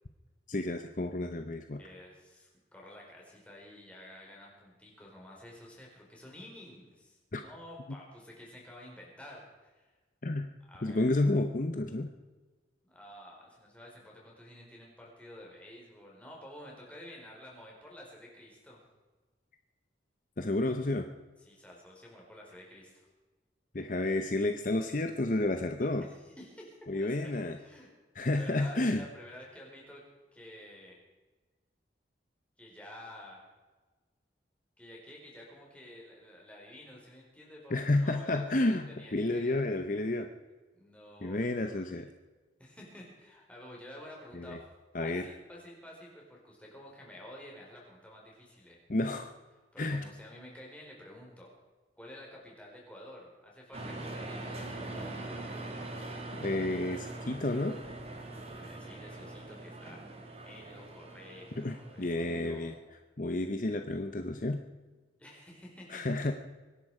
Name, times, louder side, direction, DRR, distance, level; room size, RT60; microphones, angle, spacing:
voice 1, 0.5-1.8 7.3-7.4 10.2-10.5 10.8-12.1 20.4-21.1 23.7-26.1 26.9-27.6 28.1-29.0 37.7-40.3 41.2-42.1 44.3-44.6 44.9-45.3 48.9-49.3 49.8-50.0 56.4-57.8 61.6-62.7 63.2-64.6 65.9-66.3, left 2 dB, 45° left, 6 dB, 0.8 m, -31 dB
voice 2, 1.8-9.9 10.6-11.1 12.9-18.8 21.4-23.1 26.0-27.9 28.2-30.0 30.3-31.0 32.6-33.4 34.8-39.7 40.7-42.1 42.6-44.6 45.0-48.8 49.7-51.5 52.0-55.7 58.5-60.0 60.4-62.8 65.2-66.0, left 1 dB, 5° left, -3 dB, 4.7 m, -51 dB
sound 1, 53.7-62.8, right 2 dB, 35° right, 2.4 m, -42 dB
25.0 x 11.0 x 4.9 m, 1.3 s
head